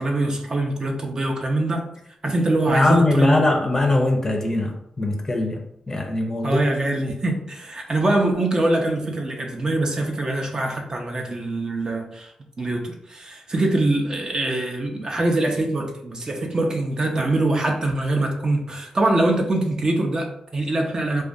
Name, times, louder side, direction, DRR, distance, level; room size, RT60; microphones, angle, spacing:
voice 1, 0.0-1.9 2.2-3.4 6.4-12.3 12.6-21.2, right 2 dB, 35° right, 2 dB, 0.4 m, -23 dB
voice 2, 2.7-6.6, left 2 dB, 25° left, 3 dB, 0.5 m, -21 dB
2.3 x 2.2 x 2.5 m, 0.73 s
cardioid pair, 80°, 2 cm